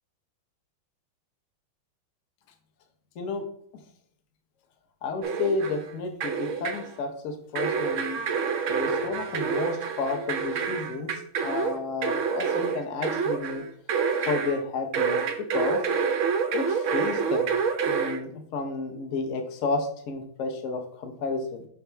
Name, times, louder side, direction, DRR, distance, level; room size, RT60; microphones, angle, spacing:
voice 1, 5.0-8.2 8.7-13.6 14.2-15.2 15.5-15.8 16.5-17.5 17.9-21.7, left 3 dB, 50° left, 4 dB, 1.0 m, -31 dB
sound 1, 5.2-5.9 6.2-6.9 7.5-14.6 14.9-18.2, right 6 dB, 85° right, 0.6 m, -28 dB
6.8 x 2.6 x 5.7 m, 0.63 s
omnidirectional pair, 2.2 m